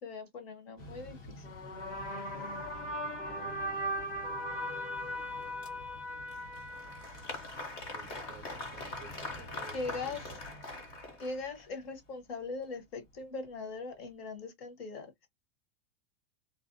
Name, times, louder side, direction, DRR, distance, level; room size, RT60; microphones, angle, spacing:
voice 1, 0.0-1.5 9.7-10.3 11.2-15.3, left 3 dB, 50° left, 0.9 m, -40 dB
Mechanical fan, 0.8-14.1, left 1 dB, 90° left, 1.3 m, -52 dB
sound 1, 1.4-7.8, equal, 65° left, 1.2 m, -39 dB
voice 2, 2.2-2.8 3.2-3.7 7.9-10.4, right 6 dB, 25° right, 0.4 m, -54 dB
Applause, 6.3-11.6, left 2 dB, 25° left, 0.6 m, -43 dB
2.5 x 2.0 x 2.4 m
supercardioid pair, 170°, 38 cm